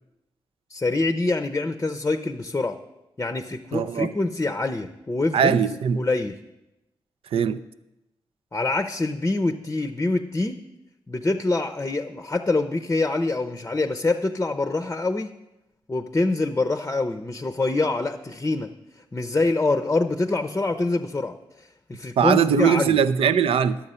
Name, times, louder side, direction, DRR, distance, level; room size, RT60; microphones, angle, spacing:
voice 1, 0.7-2.8 3.2-5.6 6.0-6.4 8.5-10.6 11.1-15.3 15.9-18.7 19.1-21.4 21.9-23.0, left 2 dB, 25° left, 0.6 m, -25 dB
voice 2, 3.7-4.1 5.3-6.0 7.3-7.6 22.2-23.8, right 7 dB, 80° right, 0.4 m, -20 dB
11.0 x 7.0 x 5.5 m
cardioid pair, 55°, 9 cm